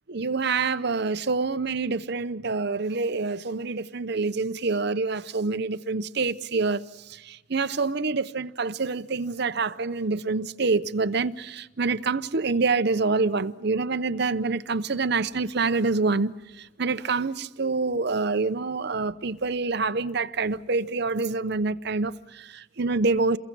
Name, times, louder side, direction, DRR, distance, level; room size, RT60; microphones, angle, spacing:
voice 1, 0.1-23.4, right 4 dB, 55° right, 0.7 m, -26 dB
28.5 x 22.5 x 6.1 m
head